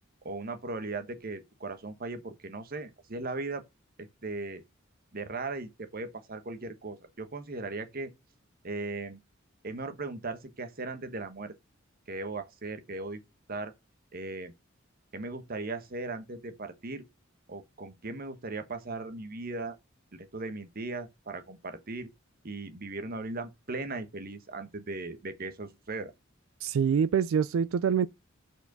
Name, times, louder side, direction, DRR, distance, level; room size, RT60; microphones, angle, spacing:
voice 1, 0.2-3.6 4.0-4.6 5.1-8.1 8.6-9.2 9.6-11.5 12.1-13.2 13.5-13.7 14.1-14.5 15.1-17.0 17.5-19.8 20.1-22.1 22.4-26.1, right 3 dB, 50° right, 1.1 m, -38 dB
voice 2, 26.6-28.1, right 7 dB, 90° right, 0.3 m, -25 dB
5.5 x 4.6 x 6.0 m
head